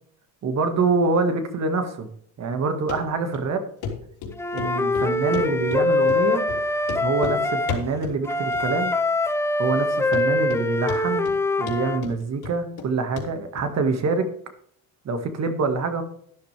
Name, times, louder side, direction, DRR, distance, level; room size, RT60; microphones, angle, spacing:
voice 1, 0.4-2.1 2.4-3.6 4.5-6.5 7.0-8.9 9.6-11.3 11.6-14.3 15.1-16.0, right 4 dB, 40° right, 7 dB, 1.8 m, -25 dB
Run, 2.9-3.0 3.3-3.4 3.8-3.9 4.2-5.8 6.1-6.2 6.5-6.6 6.8-7.4 7.7-8.2 8.5-9.0 9.2-9.3 9.8-9.9 10.1-10.6 10.9-11.4 11.7-12.9 13.2-13.3 13.6-13.7, left 6 dB, 65° left, 3.8 m, -32 dB
Wind instrument woodwind instrument, 4.4-7.8 8.3-12.0, left 2 dB, 5° left, 0.4 m, -23 dB
12.5 x 10.5 x 3.4 m, 0.65 s
cardioid pair, 115°, 41 cm